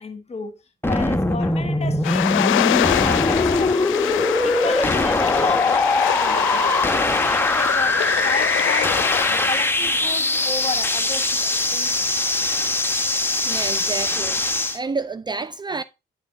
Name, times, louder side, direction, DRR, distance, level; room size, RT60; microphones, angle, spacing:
voice 1, 0.0-6.6 6.9-12.3, left 5 dB, 30° left, 1.5 m, -33 dB
sound 1, 0.8-14.8, left 2 dB, 10° left, 1.1 m, -21 dB
sound 2, 2.0-9.7, left 14 dB, 80° left, 0.6 m, -25 dB
voice 2, 13.4-14.4 14.7-15.8, right 4 dB, 20° right, 0.4 m, -29 dB
9.6 x 5.0 x 4.1 m
cardioid pair, 90°, 20 cm